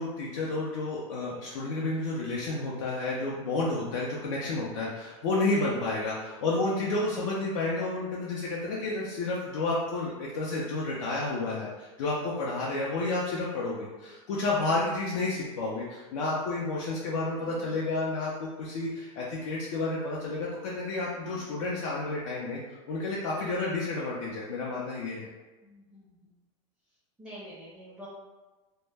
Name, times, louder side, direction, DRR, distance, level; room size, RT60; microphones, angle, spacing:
voice 1, 0.0-22.6 22.9-25.3, left 2 dB, 75° left, -5 dB, 0.5 m, -31 dB
voice 2, 25.6-26.4 27.2-28.1, equal, 5° right, -8 dB, 0.5 m, -50 dB
2.1 x 2.0 x 3.2 m, 1.2 s
supercardioid pair, 140°, 17 cm